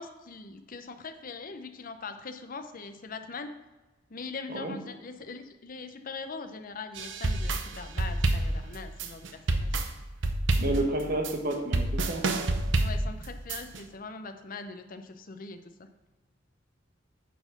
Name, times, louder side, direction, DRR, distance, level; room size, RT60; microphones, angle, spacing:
voice 1, 0.0-3.5 4.1-9.8 12.8-15.9, left 4 dB, 45° left, 8 dB, 0.6 m, -42 dB
sound 1, 7.0-13.8, right 2 dB, 70° right, 0.7 m, -28 dB
voice 2, 10.6-12.2, right 1 dB, 50° right, 3 dB, 1.2 m, -30 dB
9.2 x 4.2 x 5.9 m, 1.2 s
head